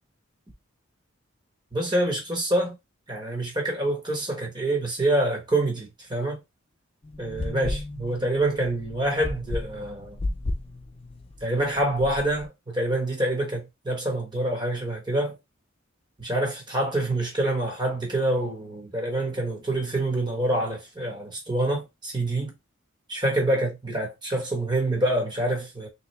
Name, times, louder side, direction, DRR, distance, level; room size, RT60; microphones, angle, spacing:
voice 1, 1.7-2.7 3.1-6.4 7.2-10.2 11.4-15.4 16.2-22.5 23.1-25.9, right 1 dB, 20° right, 1.2 m, -26 dB
sound 1, 7.0-12.5, left 2 dB, 25° left, 0.5 m, -34 dB
3.7 x 3.1 x 3.2 m
head